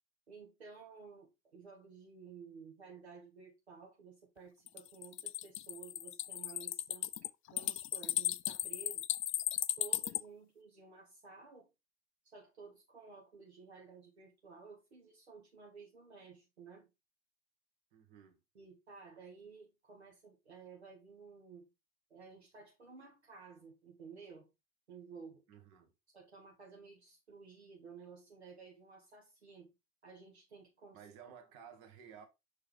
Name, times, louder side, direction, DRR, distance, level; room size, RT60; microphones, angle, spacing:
voice 1, 0.3-9.0 9.8-11.7 12.2-16.9 18.5-21.7 22.1-24.5 24.9-25.4 26.1-29.7 30.0-31.0, right 5 dB, 85° right, 1.1 m, -54 dB
sound 1, 4.7-10.2, left 14 dB, 40° left, 0.5 m, -36 dB
voice 2, 17.9-18.4 25.5-25.9 30.9-32.3, right 8 dB, 60° right, 1.4 m, -55 dB
6.2 x 4.8 x 3.4 m
figure-of-eight pair, 55°, 32 cm